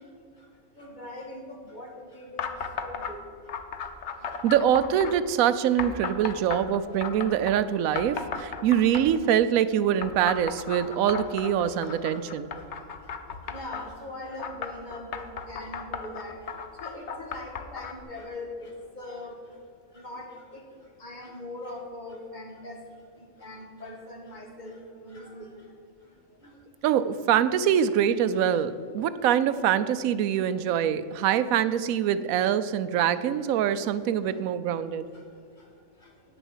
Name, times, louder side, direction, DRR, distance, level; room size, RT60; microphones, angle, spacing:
voice 1, 0.8-2.4 2.8-3.2 6.6-6.7 11.2-12.0 13.5-16.3 16.8-18.7 19.0-19.3 20.0-20.3 20.5-20.6 21.0-22.8 23.4-24.7 25.1-25.5, left 2 dB, 35° left, 1 dB, 1.6 m, -41 dB
sound 1, 2.4-3.1 3.5-5.2 5.8-7.6 8.0-9.3 10.0-13.8 14.4-18.0, left 6 dB, 60° left, 1.0 m, -35 dB
voice 2, 4.4-12.5 26.8-35.0, right 9 dB, 90° right, 13 dB, 1.0 m, -24 dB
9.4 x 7.0 x 7.2 m, 2.2 s
omnidirectional pair, 1.4 m